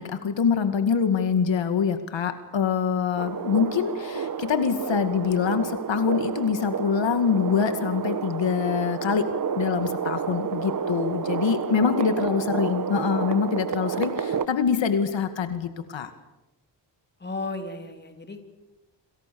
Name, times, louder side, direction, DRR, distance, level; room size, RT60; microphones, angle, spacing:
voice 1, 0.0-9.3 9.6-16.1, left 6 dB, 75° left, 8 dB, 2.2 m, -25 dB
sound 1, 3.2-14.5, right 7 dB, 45° right, 1.3 m, -30 dB
voice 2, 17.2-18.4, left 2 dB, 20° left, 5 dB, 3.5 m, -34 dB
28.5 x 27.5 x 7.1 m, 0.99 s
wide cardioid pair, 140°, 45 cm